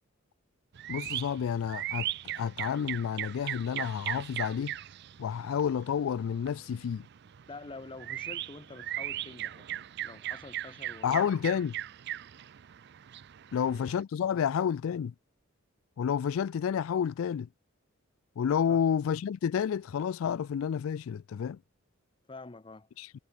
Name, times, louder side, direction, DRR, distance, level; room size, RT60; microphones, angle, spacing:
sound 1, 0.7-14.0, right 13 dB, 55° right, 0.4 m, -39 dB
voice 1, 0.9-2.1 2.4-4.7 5.2-7.0 11.0-11.7 13.5-15.1 16.0-17.5 18.4-21.6 23.0-23.1, left 8 dB, 85° left, 0.3 m, -30 dB
voice 2, 7.5-11.3 13.5-13.8 18.7-18.8 22.3-22.9, left 3 dB, 25° left, 0.8 m, -47 dB
head